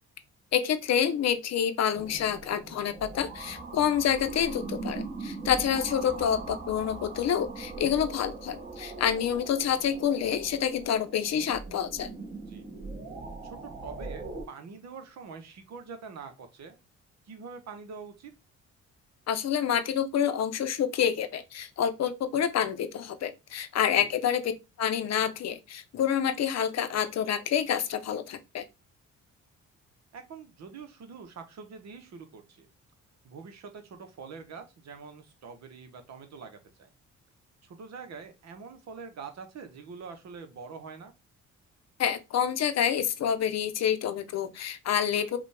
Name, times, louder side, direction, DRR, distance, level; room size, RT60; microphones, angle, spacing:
voice 1, 0.5-12.1 19.3-24.5 24.8-28.6 42.0-45.4, left 8 dB, 60° left, 0.7 m, -28 dB
sound 1, 1.9-14.4, right 3 dB, 30° right, 1.3 m, -40 dB
voice 2, 6.0-6.4 12.5-12.7 13.4-16.8 17.3-18.3 24.0-24.1 30.1-32.7 33.2-36.9 37.6-41.1, right 5 dB, 60° right, 1.0 m, -45 dB
5.0 x 2.4 x 3.3 m
cardioid pair, 90°, 30 cm